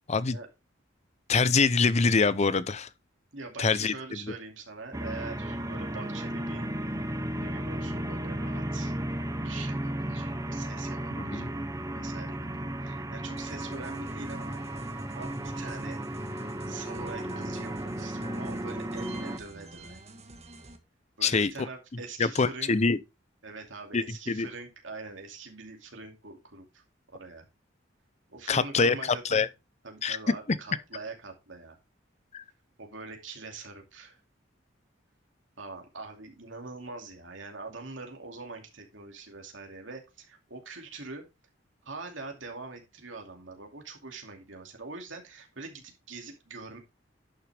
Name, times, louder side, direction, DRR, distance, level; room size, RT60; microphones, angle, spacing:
voice 1, 1.3-2.9 3.6-4.2 11.2-11.5 21.2-21.5 22.2-23.0 23.9-24.5 28.5-29.5 30.0-30.2 30.5-30.6 32.3-32.4, left 4 dB, 35° left, 0.6 m, -25 dB
voice 2, 3.3-6.7 7.4-8.9 9.4-11.6 11.9-14.6 15.1-16.0 16.7-20.0 21.2-22.7 23.4-26.8 27.1-27.5 28.3-29.5 29.8-31.8 32.8-34.2 35.6-41.2 41.8-46.8, right 3 dB, 80° right, 2.5 m, -43 dB
sound 1, 4.9-19.4, right 1 dB, 15° right, 0.9 m, -34 dB
sound 2, 13.4-20.8, right 2 dB, 35° right, 1.4 m, -48 dB
11.0 x 6.2 x 3.4 m
head